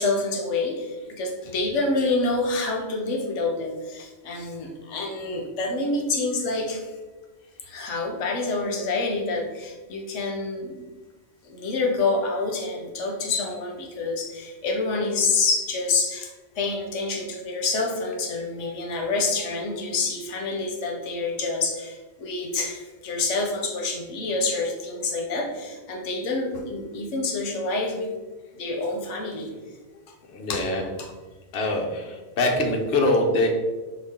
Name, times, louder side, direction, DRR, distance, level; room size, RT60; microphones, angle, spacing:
voice 1, 0.0-6.9 7.6-10.8 11.4-28.1 28.5-29.5 30.5-30.7 31.0-31.1, left 3 dB, 90° left, 2 dB, 1.1 m, -27 dB
voice 2, 30.3-30.8 31.5-33.5, left 2 dB, 65° left, 1 dB, 1.0 m, -23 dB
5.9 x 2.4 x 3.5 m, 1.2 s
omnidirectional pair, 1.2 m